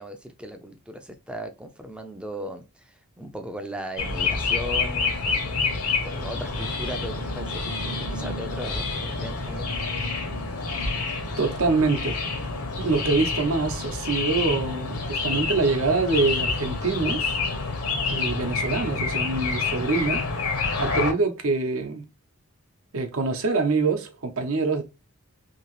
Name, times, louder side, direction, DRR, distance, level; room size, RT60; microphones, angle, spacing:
voice 1, 0.0-9.7, equal, 5° right, 0.4 m, -37 dB
sound 1, 4.0-21.1, left 4 dB, 80° left, 0.9 m, -28 dB
voice 2, 11.4-12.2 12.8-17.4 18.1-20.3 20.8-22.0 22.9-24.8, right 3 dB, 70° right, 0.7 m, -25 dB
2.9 x 2.8 x 3.0 m
head